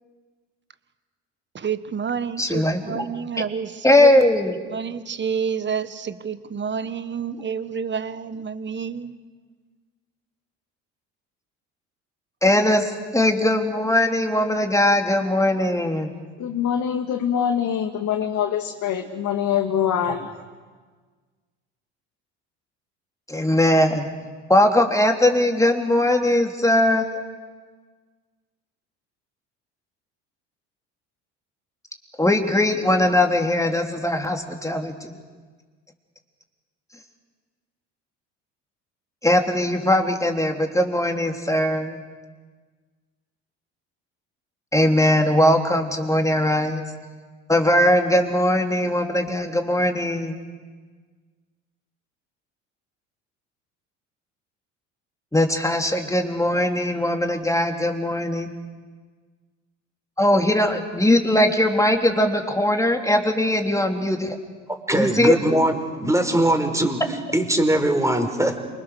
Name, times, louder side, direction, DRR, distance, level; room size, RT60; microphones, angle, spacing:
voice 1, 1.5-4.2 4.7-9.2, right 6 dB, 30° right, 13 dB, 1.6 m, -29 dB
voice 2, 2.4-3.0 3.8-4.6 12.4-16.1 23.3-24.1 24.5-27.2 32.2-35.1 39.2-42.0 44.7-46.8 47.5-50.4 55.3-58.5 60.2-64.3 65.0-65.4, left 1 dB, 10° left, 3 dB, 3.1 m, -20 dB
voice 3, 16.4-20.3, left 8 dB, 55° left, 4 dB, 2.2 m, -24 dB
voice 4, 64.9-67.0 67.3-68.6, right 1 dB, 10° right, 5 dB, 4.9 m, -21 dB
27.5 x 24.5 x 6.6 m, 1.5 s
hypercardioid pair, 65°, 36 cm